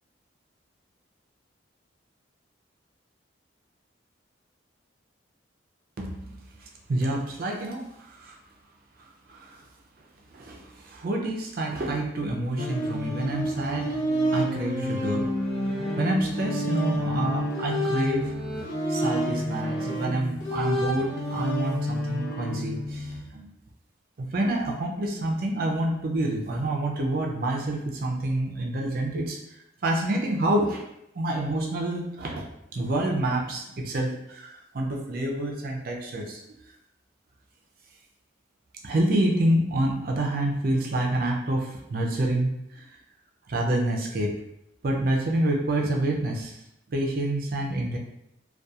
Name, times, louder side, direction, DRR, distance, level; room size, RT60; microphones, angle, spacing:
voice 1, 6.0-6.3 6.6-8.4 9.0-9.6 10.3-14.0 14.3-18.3 18.9-23.5 24.2-29.4 29.8-30.8 31.1-36.4 38.8-42.9 43.5-44.4 44.8-46.6 46.9-48.0, right 1 dB, 50° right, 0 dB, 0.4 m, -28 dB
sound 1, 12.6-23.2, equal, 90° left, 0.7 m, -29 dB
2.7 x 2.2 x 2.3 m, 0.81 s
head